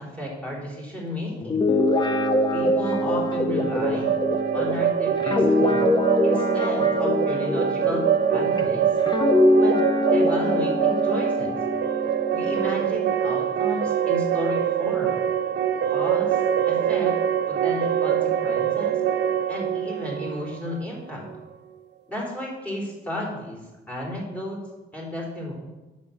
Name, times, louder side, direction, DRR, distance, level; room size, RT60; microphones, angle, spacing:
voice 1, 0.0-1.6 2.5-4.1 4.5-5.9 6.2-8.0 8.3-8.9 9.6-9.8 10.1-11.5 12.3-15.2 15.9-16.4 16.7-17.2 17.5-19.0 19.5-21.3 22.1-23.6 23.9-24.6 24.9-25.5, left 1 dB, 5° left, -3 dB, 3.8 m, -33 dB
Guitar, 1.4-8.6 9.1-12.8, left 1 dB, 20° left, 0.8 m, -23 dB
sound 1, 3.6-21.3, right 9 dB, 60° right, 0.7 m, -24 dB
7.4 x 6.4 x 7.0 m, 1.1 s
cardioid pair, 90°, 20 cm